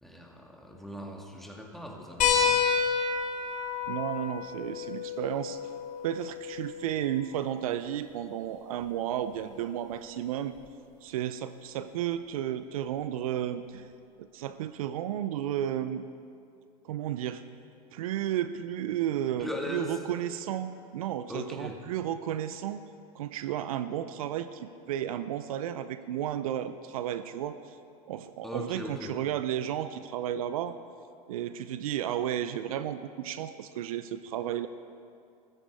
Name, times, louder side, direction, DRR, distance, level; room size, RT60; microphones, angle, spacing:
voice 1, 0.0-2.6 19.4-19.9 21.3-21.8 28.4-29.2, left 1 dB, ahead, 0 dB, 2.2 m, -39 dB
sound 1, 2.2-7.3 8.8-8.9 10.6-10.7, left 6 dB, 45° left, 2.7 m, -30 dB
voice 2, 3.9-5.6 6.0-10.5 11.0-13.9 14.2-16.0 16.8-17.4 17.9-22.8 23.1-27.8 28.1-30.8 31.3-34.7, right 11 dB, 75° right, 12 dB, 0.6 m, -33 dB
14.5 x 14.0 x 4.8 m, 2.4 s
hypercardioid pair, 85°, 19 cm